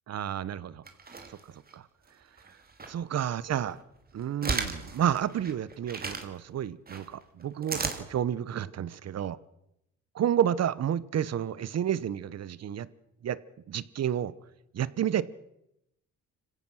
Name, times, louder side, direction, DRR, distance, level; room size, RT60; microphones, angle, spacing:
voice 1, 0.1-0.8 1.3-1.4 1.7-1.9 2.9-3.8 4.1-9.4 10.1-12.9 13.2-13.4 13.7-14.3 14.7-15.2, right 10 dB, 55° right, 18 dB, 1.1 m, -30 dB
sound 1, 0.9-1.7 2.4-3.0 3.4-6.2 6.9-8.0, right 4 dB, 30° right, 2.9 m, -35 dB
25.5 x 16.5 x 6.3 m, 0.84 s
cardioid pair, 90°, 30 cm